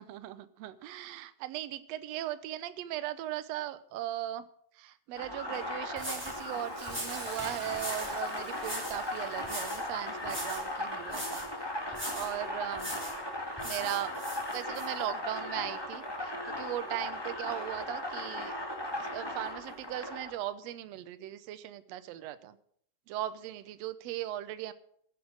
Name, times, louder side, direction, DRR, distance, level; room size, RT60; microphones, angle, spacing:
voice 1, 0.0-4.5 4.8-11.4 12.1-13.0 13.6-14.2 14.5-18.6 19.0-22.6 23.1-24.7, right 13 dB, 70° right, 13 dB, 1.8 m, -38 dB
sound 1, 5.1-20.3, left 1 dB, 10° left, 1.2 m, -37 dB
sound 2, 5.5-5.6 6.0-6.4 6.9-8.2 8.6-9.0 9.4-9.9 10.2-10.7 11.1-11.5 11.9-12.4 12.8-13.2 13.6-14.9, equal, 5° right, 3.7 m, -40 dB
Hiss, 6.0-13.0 13.4-13.5, right 3 dB, 30° right, 2.1 m, -50 dB
15.0 x 8.1 x 6.4 m, 0.66 s
omnidirectional pair, 3.5 m